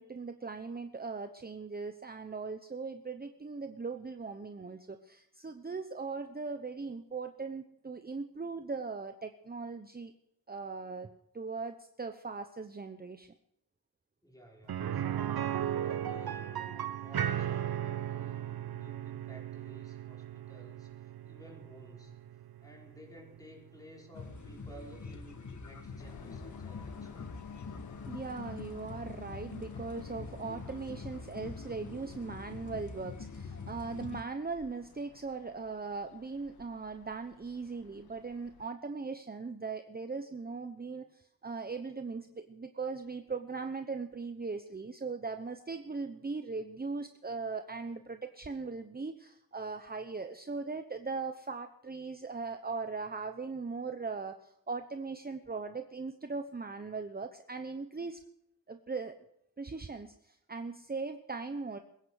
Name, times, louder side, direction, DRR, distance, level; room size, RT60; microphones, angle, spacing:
voice 1, 0.0-10.1 10.5-11.1 11.3-13.3 28.1-58.2 58.7-59.2 59.6-61.8, right 4 dB, 25° right, 7 dB, 1.0 m, -39 dB
voice 2, 14.2-15.4 15.8-22.2 22.6-27.3, equal, 10° left, -1 dB, 5.0 m, -54 dB
sound 1, 14.7-24.5 24.8-24.9 27.3-27.4, right 10 dB, 80° right, 0.9 m, -37 dB
sound 2, 24.1-34.2, left 4 dB, 50° left, 1.7 m, -44 dB
Train, 26.0-38.6, left 8 dB, 80° left, 1.2 m, -56 dB
21.5 x 9.8 x 6.4 m, 0.74 s
wide cardioid pair, 90°, 36 cm